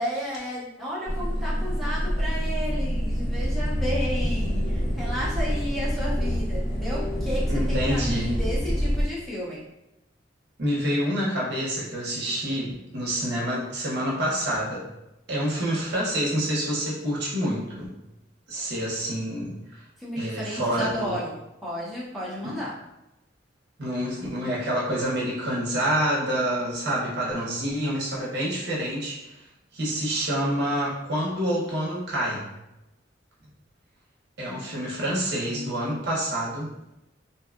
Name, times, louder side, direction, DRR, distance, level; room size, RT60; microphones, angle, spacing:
voice 1, 0.0-9.6 20.0-21.3 21.6-22.8, equal, ahead, -8 dB, 0.6 m, -32 dB
sound 1, 1.1-9.0, equal, 85° left, 1.0 m, -26 dB
voice 2, 7.5-8.4 10.6-14.8 15.3-17.9 18.5-19.8 20.2-21.2 22.4-22.5 23.8-29.3 29.7-32.5 34.4-36.7, equal, 60° right, -4 dB, 0.8 m, -27 dB
2.6 x 2.3 x 2.3 m, 0.92 s
head